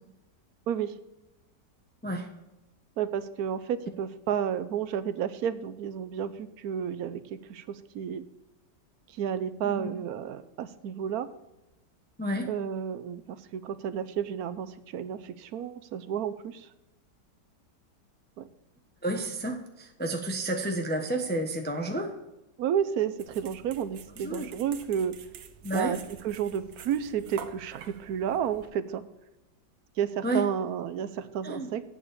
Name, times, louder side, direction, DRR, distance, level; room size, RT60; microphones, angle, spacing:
voice 1, 3.0-8.2 9.1-11.3 12.5-16.7 18.4-18.5 22.6-25.1 25.7-26.0 26.2-29.0 30.0-31.8, right 8 dB, 65° right, 13 dB, 1.1 m, -31 dB
voice 2, 19.0-22.1 24.2-24.5 25.6-25.9 30.2-30.4 31.4-31.7, right 1 dB, 10° left, 3 dB, 0.8 m, -30 dB
sound 1, 23.2-28.7, right 8 dB, 85° right, 1.5 m, -47 dB
8.7 x 7.1 x 6.6 m, 0.98 s
omnidirectional pair, 1.9 m